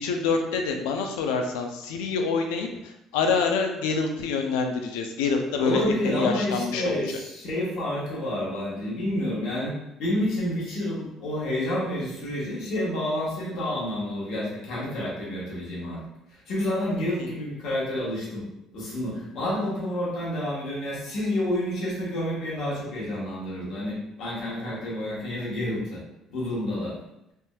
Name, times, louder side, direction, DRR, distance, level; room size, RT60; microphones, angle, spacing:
voice 1, 0.0-7.0 17.2-17.3, left 4 dB, 85° left, 3 dB, 0.4 m, -26 dB
voice 2, 5.6-16.0 16.3-18.5 18.7-26.0 26.3-27.0, left 1 dB, 70° left, -5 dB, 1.3 m, -29 dB
3.4 x 2.8 x 2.2 m, 0.85 s
supercardioid pair, 75°, 0 cm